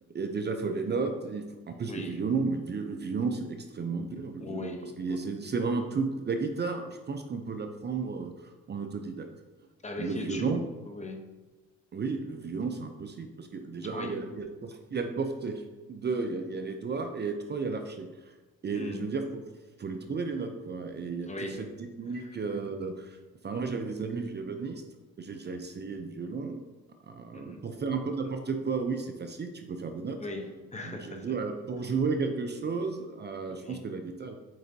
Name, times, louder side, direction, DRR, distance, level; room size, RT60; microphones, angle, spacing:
voice 1, 0.1-9.3 10.0-10.6 11.9-15.6 15.9-18.3 18.6-19.4 19.8-21.3 21.6-23.2 23.4-24.8 25.2-26.6 27.0-30.2 30.9-34.4, right 4 dB, 35° right, 6 dB, 0.6 m, -33 dB
voice 2, 1.9-2.3 4.4-5.3 9.8-11.2 13.8-14.3 18.7-19.1 21.3-21.8 22.2-22.3 23.5-23.6 27.3-27.7 30.2-31.3 33.5-33.8, left 1 dB, 25° left, 3 dB, 0.9 m, -39 dB
7.7 x 4.8 x 2.8 m, 1.2 s
cardioid pair, 90°, 30 cm